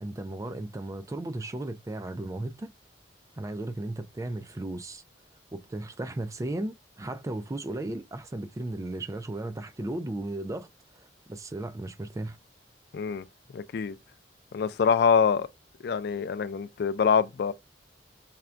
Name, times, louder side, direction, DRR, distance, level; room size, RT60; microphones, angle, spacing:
voice 1, 0.0-2.7 3.4-5.0 5.5-10.7 10.9-12.4, right 1 dB, 20° right, 0.3 m, -35 dB
voice 2, 12.9-13.2 13.5-14.0 14.5-15.5 15.8-17.5, left 6 dB, 65° left, 0.3 m, -25 dB
5.6 x 2.2 x 2.4 m
head